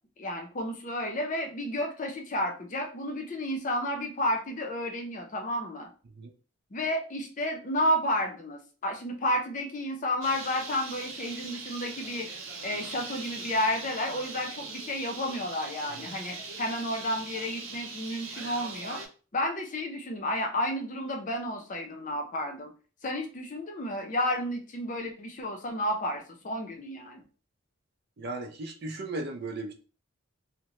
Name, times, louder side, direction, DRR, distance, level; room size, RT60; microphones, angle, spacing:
voice 1, 0.2-5.9 6.7-12.3 12.6-19.0 19.3-22.7 23.0-27.2, left 1 dB, 40° left, 3 dB, 0.5 m, -31 dB
Bird, 10.2-19.1, right 4 dB, 85° right, 0.8 m, -41 dB
voice 2, 28.2-29.7, right 2 dB, 50° right, 4 dB, 0.5 m, -36 dB
2.7 x 2.1 x 2.9 m, 0.38 s
head